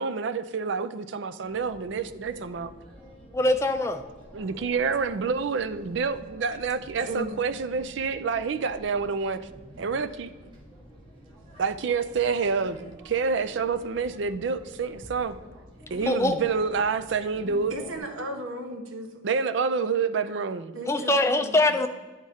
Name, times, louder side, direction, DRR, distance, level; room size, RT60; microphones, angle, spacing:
voice 1, 0.0-2.7 4.3-9.4 9.8-10.3 11.6-15.3 15.9-17.8 19.2-20.7, right 5 dB, 65° right, 12 dB, 0.4 m, -28 dB
sound 1, 1.4-18.0, right 1 dB, 25° right, 1.6 m, -48 dB
voice 2, 3.3-4.0 16.1-16.3 20.9-21.9, left 2 dB, 15° left, 8 dB, 0.3 m, -23 dB
voice 3, 7.0-7.4 17.7-19.3 20.7-21.8, right 1 dB, 85° right, 3 dB, 1.0 m, -36 dB
10.5 x 3.7 x 4.1 m, 1.3 s
head